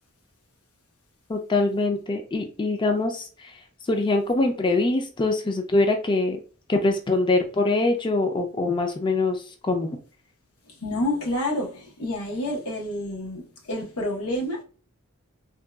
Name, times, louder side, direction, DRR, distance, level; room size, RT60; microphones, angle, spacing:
voice 1, 1.3-3.5 3.9-6.4 6.7-10.0, left 2 dB, 20° left, 0.4 m, -23 dB
voice 2, 10.7-14.6, left 1 dB, 90° left, 1.0 m, -29 dB
3.6 x 2.3 x 2.2 m
head